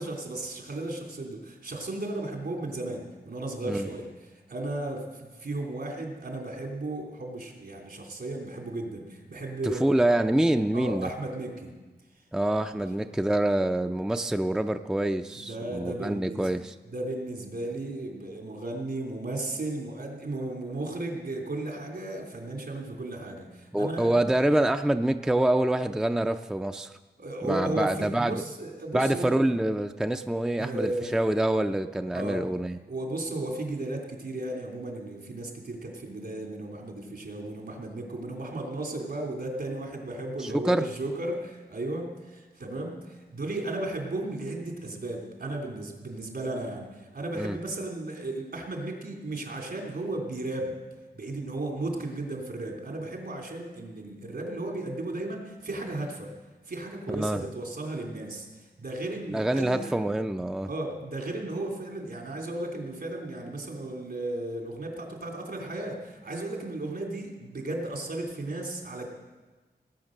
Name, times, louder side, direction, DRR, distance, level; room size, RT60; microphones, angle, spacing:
voice 1, 0.0-4.1 4.5-10.0 10.7-11.7 15.3-16.5 16.9-24.1 27.2-29.3 30.6-31.3 32.1-32.5 32.9-50.7 51.1-56.3 56.7-58.5 58.8-59.9 60.7-69.1, right 2 dB, 75° right, 0 dB, 3.4 m, -35 dB
voice 2, 9.6-11.1 12.3-16.8 23.7-26.9 27.5-28.4 28.9-32.8 40.4-40.9 47.4-47.6 57.1-57.4 59.3-60.7, right 1 dB, 5° right, 7 dB, 0.5 m, -26 dB
18.5 x 8.2 x 6.6 m, 1.3 s
wide cardioid pair, 80°, 17 cm